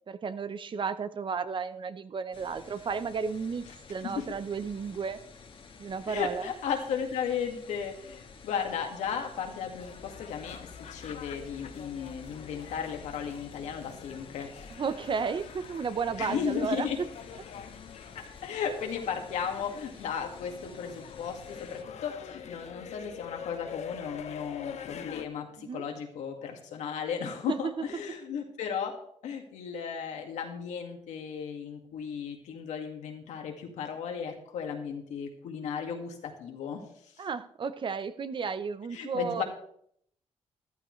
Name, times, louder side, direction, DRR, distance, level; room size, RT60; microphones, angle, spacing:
voice 1, 0.1-5.2 5.8-6.5 14.7-17.1 25.6-25.8 27.4-27.9 37.2-39.4, right 5 dB, 45° right, 12 dB, 0.8 m, -33 dB
sound 1, 2.3-21.8, left 4 dB, 50° left, 1.5 m, -52 dB
voice 2, 6.1-14.5 16.2-17.0 18.1-36.8 38.9-39.4, left 7 dB, 90° left, 3 dB, 2.1 m, -35 dB
sound 2, 9.8-25.3, left 7 dB, 70° left, 0.9 m, -45 dB
14.0 x 12.0 x 3.2 m, 0.67 s
cardioid pair, 90°, 12 cm